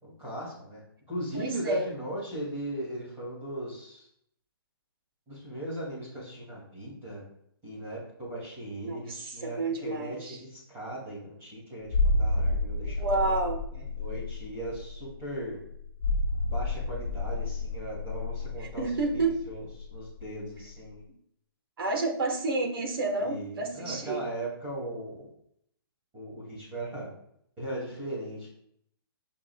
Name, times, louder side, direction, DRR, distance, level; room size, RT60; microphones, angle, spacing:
voice 1, 0.0-0.8 1.1-4.1 5.3-7.3 7.6-13.4 13.7-15.6 16.5-19.6 19.9-21.0 23.2-25.3 26.1-27.1 27.6-28.5, right 1 dB, 15° right, -6 dB, 2.5 m, -38 dB
voice 2, 1.3-1.8 8.8-10.4 12.9-13.6 18.6-19.3 21.8-24.2, right 3 dB, 65° right, 3 dB, 1.6 m, -30 dB
sound 1, 11.9-20.3 20.6-20.7, left 2 dB, 40° left, 2.0 m, -30 dB
8.7 x 5.7 x 2.4 m, 0.70 s
hypercardioid pair, 170°, 13 cm